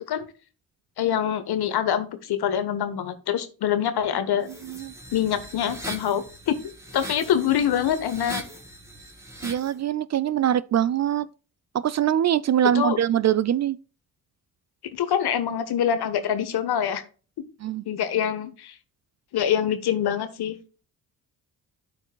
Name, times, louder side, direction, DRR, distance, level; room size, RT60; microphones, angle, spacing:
voice 1, 1.0-4.5 5.1-6.6 6.9-8.4 12.6-13.0 15.0-17.0 17.9-18.7 19.3-20.6, left 9 dB, 60° left, 1.1 m, -25 dB
sound 1, 4.4-9.7, right 1 dB, 5° right, 2.3 m, -40 dB
voice 2, 9.4-11.3 11.7-13.8 17.6-17.8, right 10 dB, 40° right, 0.5 m, -23 dB
13.0 x 4.6 x 2.2 m
hypercardioid pair, 45°, 44 cm